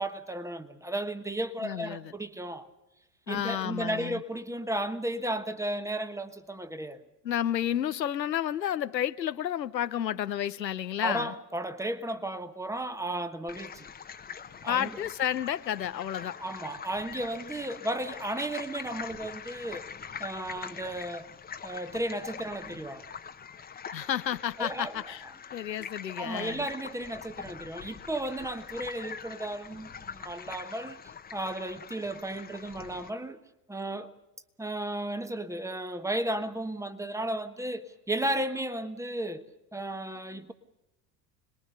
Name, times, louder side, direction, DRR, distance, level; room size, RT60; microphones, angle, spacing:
voice 1, 0.0-2.7 3.3-7.0 11.0-13.9 14.6-15.0 16.4-19.9 20.2-21.3 21.6-23.1 24.6-25.0 26.2-31.0 31.3-33.4 33.7-34.1 34.6-39.4 39.7-40.5, right 1 dB, 5° right, 1.2 m, -34 dB
voice 2, 1.6-2.1 3.3-4.2 7.2-11.3 14.7-16.4 23.9-25.2 25.5-26.7, left 10 dB, 80° left, 0.8 m, -31 dB
sound 1, 13.5-33.1, left 7 dB, 20° left, 1.1 m, -44 dB
26.5 x 21.0 x 6.6 m
figure-of-eight pair, 75°, 49 cm